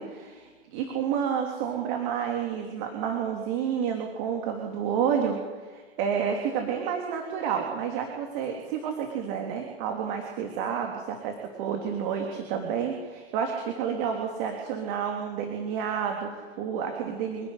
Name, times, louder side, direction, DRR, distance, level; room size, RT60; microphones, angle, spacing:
voice 1, 0.0-5.4 5.7-17.5, right 7 dB, 55° right, 3 dB, 3.4 m, -30 dB
26.0 x 11.5 x 9.9 m, 1.4 s
hypercardioid pair, 95°, 32 cm